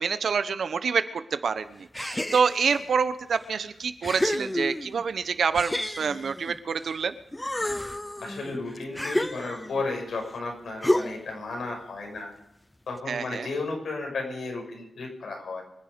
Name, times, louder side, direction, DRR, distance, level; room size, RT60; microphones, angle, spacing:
voice 1, 0.0-7.1 13.1-13.5, right 6 dB, 65° right, 11 dB, 1.1 m, -27 dB
sound 1, 1.9-2.8 3.4-3.5 4.0-5.0 5.5-7.0 7.3-9.8 10.8-11.4, left 1 dB, 10° left, 0.6 m, -30 dB
voice 2, 8.2-12.3 12.9-15.6, left 3 dB, 75° left, 1 dB, 6.2 m, -33 dB
25.5 x 10.5 x 5.2 m, 0.85 s
wide cardioid pair, 170°, 0 cm